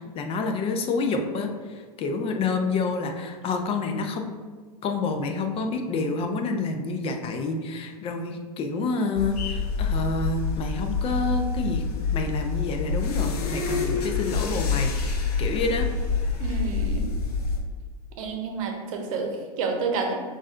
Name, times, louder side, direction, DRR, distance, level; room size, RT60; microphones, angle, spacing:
voice 1, 0.0-4.3 4.8-11.8 12.1-14.9 15.4-15.9, left 3 dB, 30° left, 5 dB, 0.5 m, -28 dB
sound 1, 9.1-17.6, left 4 dB, 70° left, 0.7 m, -27 dB
voice 2, 16.4-17.1 18.2-20.1, right 4 dB, 60° right, 2 dB, 0.8 m, -29 dB
6.1 x 2.5 x 2.4 m, 1.5 s
hypercardioid pair, 100°, 20 cm